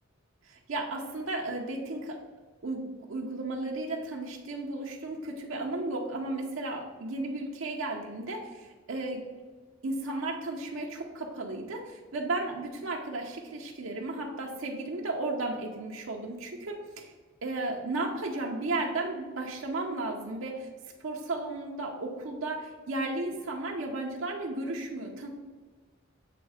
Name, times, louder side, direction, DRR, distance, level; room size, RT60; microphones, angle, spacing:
voice 1, 0.4-2.2 2.6-9.2 9.8-17.1 17.4-20.7 21.0-25.3, right 2 dB, 75° right, 0 dB, 0.7 m, -34 dB
7.7 x 3.1 x 4.9 m, 1.4 s
head